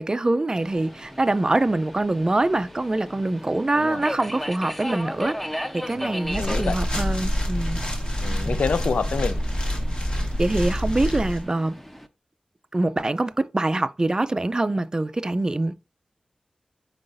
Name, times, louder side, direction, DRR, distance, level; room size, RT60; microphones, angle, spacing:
voice 1, 0.0-7.8 8.2-8.4 10.2-11.8 12.7-15.7, right 2 dB, 30° right, 0.4 m, -24 dB
Subway metro underground, 0.5-12.1, equal, 10° left, 0.7 m, -37 dB
voice 2, 5.9-6.8 8.2-9.4, left 5 dB, 75° left, 0.4 m, -28 dB
sound 1, 6.2-11.4, equal, 40° left, 1.2 m, -26 dB
4.7 x 3.9 x 2.5 m
cardioid pair, 55°, 2 cm